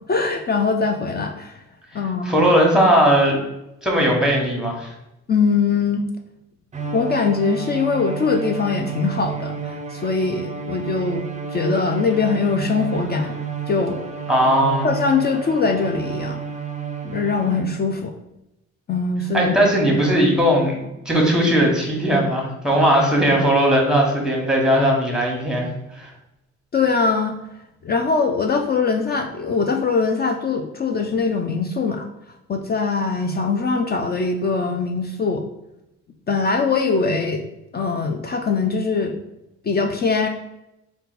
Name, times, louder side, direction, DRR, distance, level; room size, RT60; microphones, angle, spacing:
voice 1, 0.1-1.6 1.9-2.5 5.3-6.0 6.9-13.3 13.7-14.1 14.8-16.4 17.0-18.1 18.9-19.5 26.7-27.4 27.8-32.1 32.5-35.4 36.3-37.4 37.7-39.2 39.6-40.3, left 4 dB, 35° left, 3 dB, 0.4 m, -22 dB
voice 2, 1.9-3.4 3.8-4.9 14.3-14.9 19.3-20.7 21.0-25.7 25.9-26.1, equal, ahead, -1 dB, 1.1 m, -18 dB
Bowed string instrument, 6.7-17.9, right 6 dB, 25° right, 0.5 m, -31 dB
3.9 x 2.2 x 4.1 m, 0.89 s
cardioid pair, 90°, 30 cm